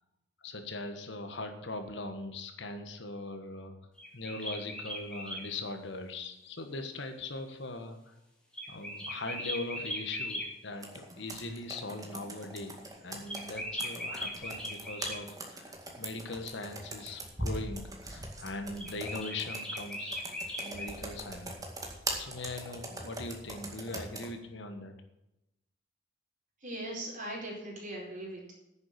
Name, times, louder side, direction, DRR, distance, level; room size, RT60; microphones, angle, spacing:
voice 1, 0.4-3.7 4.1-8.1 8.7-20.2 20.6-21.6 22.2-24.9, left 2 dB, 70° left, 7 dB, 1.4 m, -40 dB
sound 1, 4.0-5.5 8.5-10.5 13.3-15.2 18.8-20.9, equal, 5° left, 2.7 m, -39 dB
Computer keyboard, 10.8-24.3, right 2 dB, 20° right, 2.1 m, -42 dB
voice 2, 26.6-28.5, right 1 dB, 45° right, -2 dB, 4.6 m, -39 dB
10.0 x 7.2 x 8.5 m, 0.90 s
head